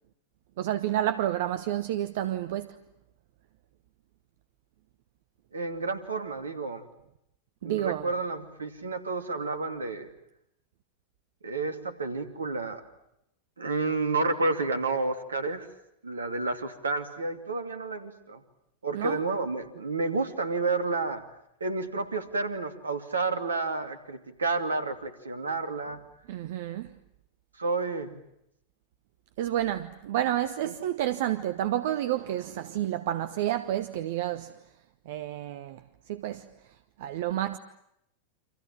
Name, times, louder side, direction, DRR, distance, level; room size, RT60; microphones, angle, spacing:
voice 1, 0.6-2.8 7.6-8.1 18.9-19.2 26.3-27.0 29.4-34.6 35.0-35.8 36.1-36.5 37.0-37.6, right 12 dB, 55° right, 1.0 m, -30 dB
voice 2, 5.5-6.8 7.6-10.1 11.4-12.8 13.6-15.7 16.0-18.4 18.8-21.2 21.6-26.0 27.6-28.2 30.6-30.7, right 3 dB, 75° right, 2.6 m, -30 dB
29.5 x 26.5 x 7.5 m
figure-of-eight pair, 90°, 0 cm